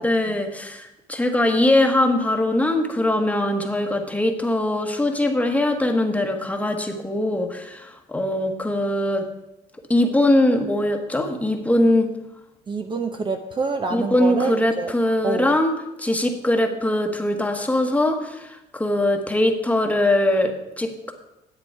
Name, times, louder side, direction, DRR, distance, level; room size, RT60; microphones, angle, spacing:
voice 1, 0.0-9.3 9.9-12.1 13.9-15.7 16.0-21.1, left 1 dB, 10° left, 4 dB, 1.2 m, -21 dB
voice 2, 12.7-14.9 15.2-15.5, right 4 dB, 30° right, 6 dB, 0.7 m, -27 dB
10.5 x 7.9 x 4.7 m, 0.92 s
cardioid pair, 110°, 17 cm